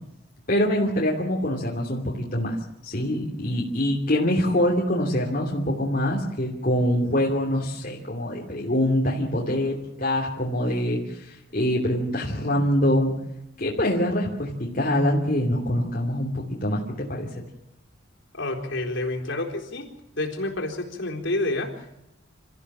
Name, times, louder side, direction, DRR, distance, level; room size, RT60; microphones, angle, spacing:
voice 1, 0.5-2.6 2.8-13.1 13.6-17.3, left 1 dB, 40° left, -3 dB, 3.0 m, -24 dB
voice 2, 18.3-19.9 20.2-21.9, left 2 dB, 60° left, 2 dB, 4.1 m, -29 dB
28.0 x 14.5 x 7.4 m, 0.87 s
head